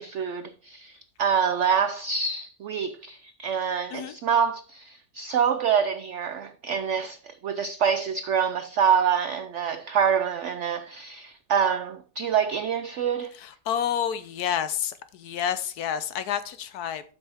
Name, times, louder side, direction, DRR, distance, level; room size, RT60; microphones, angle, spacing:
voice 1, 0.0-13.3, right 7 dB, 85° right, 0.6 m, -26 dB
voice 2, 13.4-17.0, left 9 dB, 70° left, 1.2 m, -29 dB
12.0 x 5.7 x 3.5 m
omnidirectional pair, 1.8 m